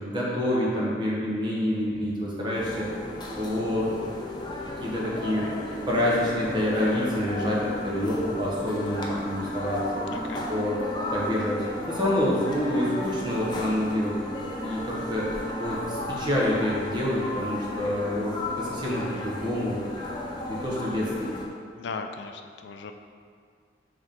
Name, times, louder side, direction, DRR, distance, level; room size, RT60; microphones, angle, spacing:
voice 1, 0.0-2.9 3.4-3.9 4.8-5.6 5.9-10.0 10.5-10.8 11.1-19.9 20.5-21.3, left 1 dB, 25° right, -5 dB, 1.1 m, -27 dB
sound 1, 2.5-21.5, left 1 dB, 25° left, 0.6 m, -34 dB
voice 2, 10.1-10.5 19.2-19.3 21.8-22.9, left 4 dB, 80° left, 6 dB, 0.4 m, -37 dB
7.9 x 3.6 x 3.7 m, 2.1 s
head